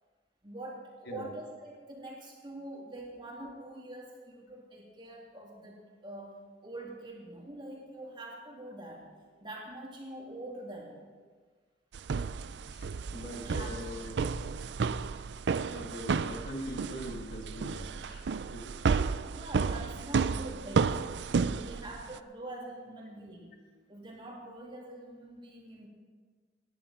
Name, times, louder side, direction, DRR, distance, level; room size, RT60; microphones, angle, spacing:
voice 1, 0.4-6.4 6.6-9.0 9.4-11.0 13.1-13.8 19.2-21.0 21.5-23.5 23.9-25.9, right 1 dB, 25° right, -2 dB, 2.9 m, -45 dB
sound 1, 11.9-22.2, right 5 dB, 70° right, 0.4 m, -32 dB
voice 2, 12.7-14.2 15.6-18.8, equal, 60° left, 2 dB, 1.8 m, -42 dB
17.5 x 11.0 x 4.4 m, 1.5 s
head